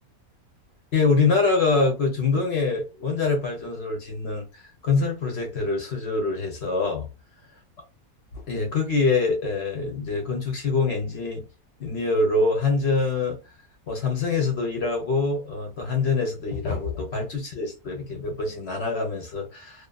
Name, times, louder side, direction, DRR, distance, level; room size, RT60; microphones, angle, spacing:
voice 1, 0.9-7.1 8.3-11.4 11.8-13.4 13.9-19.9, left 4 dB, 55° left, 0.8 m, -25 dB
2.5 x 2.5 x 2.2 m
omnidirectional pair, 1.7 m